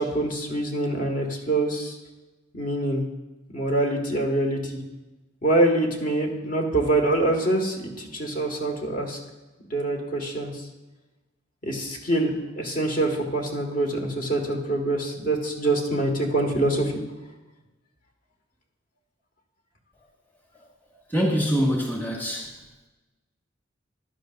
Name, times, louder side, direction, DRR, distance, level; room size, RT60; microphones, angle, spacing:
voice 1, 0.0-2.0 2.5-3.0 3.5-4.8 5.4-9.2 9.7-10.5 11.6-16.9, right 2 dB, 45° left, 2 dB, 1.8 m, -25 dB
voice 2, 21.1-22.5, equal, 10° left, -1 dB, 1.6 m, -24 dB
15.0 x 11.5 x 2.6 m, 1.1 s
head